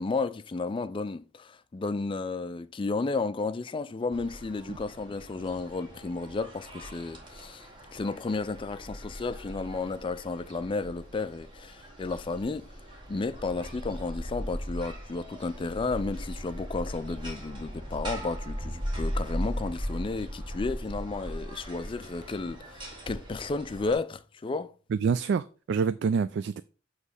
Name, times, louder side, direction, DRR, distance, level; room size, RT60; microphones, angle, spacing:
voice 1, 0.0-12.7 13.1-24.7, left 3 dB, 25° left, 0.4 m, -33 dB
sound 1, 4.1-23.9, equal, 25° right, 2.0 m, -39 dB
voice 2, 24.9-26.6, right 6 dB, 65° right, 0.3 m, -27 dB
8.1 x 3.2 x 5.4 m
head